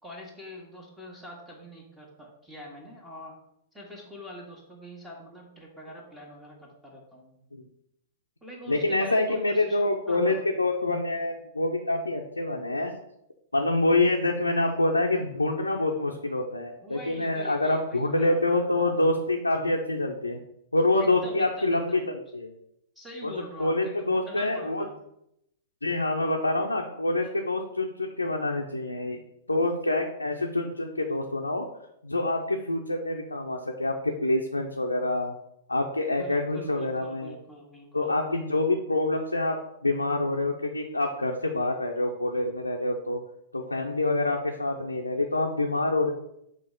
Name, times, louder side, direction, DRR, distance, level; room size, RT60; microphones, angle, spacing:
voice 1, 0.0-3.4 3.7-7.4 8.4-10.4 16.8-19.0 21.0-22.1 22.9-24.9 36.2-38.1, equal, 5° right, -3 dB, 1.5 m, -44 dB
voice 2, 8.7-12.9 13.5-20.4 20.7-22.5 23.2-23.3 23.6-24.8 25.8-29.2 29.5-31.7 32.0-35.3 35.7-37.4 37.9-43.2 43.5-46.1, left 2 dB, 85° left, 1 dB, 0.6 m, -26 dB
6.7 x 3.2 x 5.2 m, 0.78 s
figure-of-eight pair, 100°, 0 cm